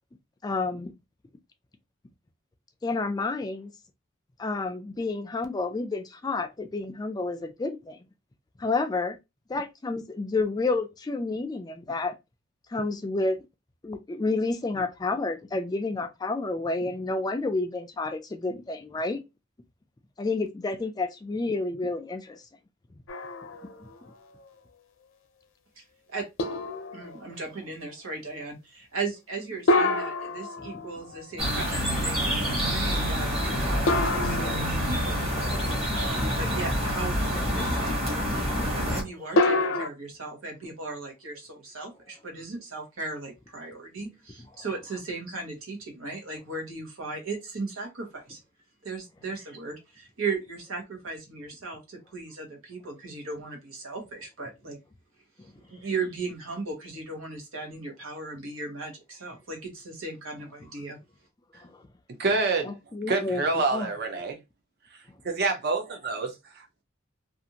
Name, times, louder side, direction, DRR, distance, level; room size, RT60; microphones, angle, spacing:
voice 1, 0.4-0.9 2.8-3.7 4.4-8.0 8.6-9.2 9.5-12.1 12.7-13.4 13.8-19.2 20.2-22.4 30.6-30.7 61.7-61.8 62.7-63.4 63.7-63.9, left 3 dB, 20° left, 0.3 m, -30 dB
sound 1, 23.1-24.0 24.5-24.6 26.4-27.3 29.7-31.3 33.9-35.2 39.4-39.9, left 2 dB, 70° left, 0.6 m, -27 dB
voice 2, 26.9-35.3 35.9-38.3 38.8-48.4 48.8-54.8 55.7-61.0, right 3 dB, 90° right, 1.1 m, -37 dB
sound 2, 31.4-39.0, equal, 30° right, 1.1 m, -27 dB
voice 3, 62.2-62.8 63.1-64.4 65.2-66.8, right 3 dB, 50° right, 0.6 m, -27 dB
2.5 x 2.5 x 2.8 m
head